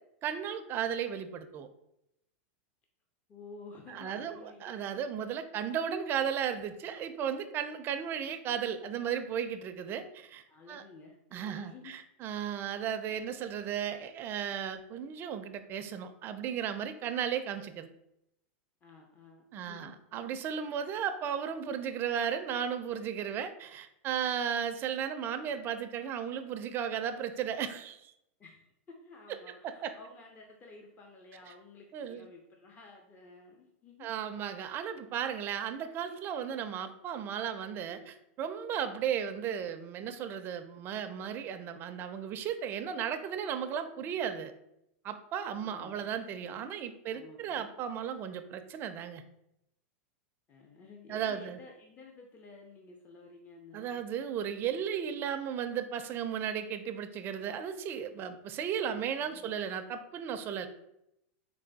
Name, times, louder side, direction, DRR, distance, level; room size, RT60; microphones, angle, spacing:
voice 1, 0.2-1.7 3.9-10.8 11.3-17.9 19.5-28.1 29.6-29.9 31.9-32.3 34.0-44.5 45.0-49.2 51.1-51.6 53.7-60.7, right 8 dB, 30° right, 9 dB, 0.4 m, -35 dB
voice 2, 3.3-4.8 5.5-5.8 10.5-11.9 18.8-19.9 28.4-34.1 39.0-39.3 45.6-46.2 47.1-47.7 50.5-54.1 54.6-54.9 59.2-59.5, left 3 dB, 25° left, 1 dB, 0.6 m, -53 dB
3.3 x 3.3 x 3.9 m, 0.81 s
supercardioid pair, 140°, 7 cm